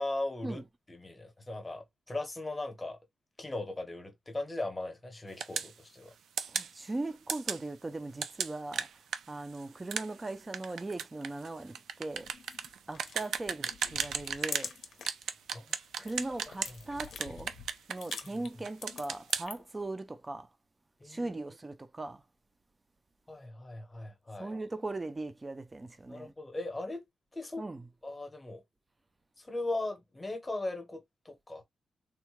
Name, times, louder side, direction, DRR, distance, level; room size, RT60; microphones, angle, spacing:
voice 1, 0.0-3.0 3.4-6.1 15.5-15.8 16.7-16.8 21.0-21.4 23.3-24.5 26.1-27.0 27.3-27.6 28.0-28.6 29.4-31.6, left 2 dB, 15° left, 0.8 m, -38 dB
sound 1, 5.4-5.7 6.4-6.7 7.3-7.6 8.2-14.7 15.1-16.7 17.0-18.4 18.6-19.4, right 7 dB, 90° right, 0.4 m, -35 dB
voice 2, 6.5-8.9 9.3-12.3 12.9-14.7 16.0-17.5 17.9-20.5 21.0-22.2 24.4-26.3 27.6-27.8, right 2 dB, 15° right, 0.4 m, -39 dB
sound 2, 12.1-15.2 15.6-19.8, left 6 dB, 70° left, 0.6 m, -47 dB
3.4 x 2.2 x 3.0 m
wide cardioid pair, 170°, 0 cm